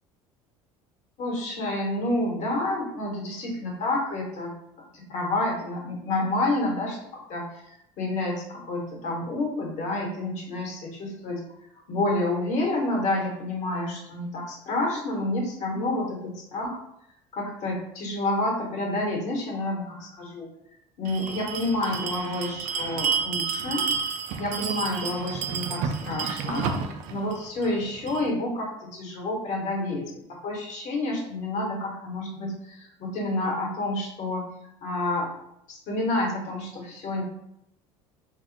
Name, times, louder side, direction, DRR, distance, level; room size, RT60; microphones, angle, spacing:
voice 1, 1.2-4.5 4.9-11.4 11.9-16.8 17.3-20.5 21.0-23.9 24.4-30.1 30.4-34.4 34.8-35.3 35.7-37.2, left 2 dB, 60° left, -1 dB, 1.1 m, -29 dB
Bell, 21.0-28.3, right 6 dB, 65° right, 0.4 m, -31 dB
2.4 x 2.1 x 3.8 m, 0.78 s
supercardioid pair, 85°, 14 cm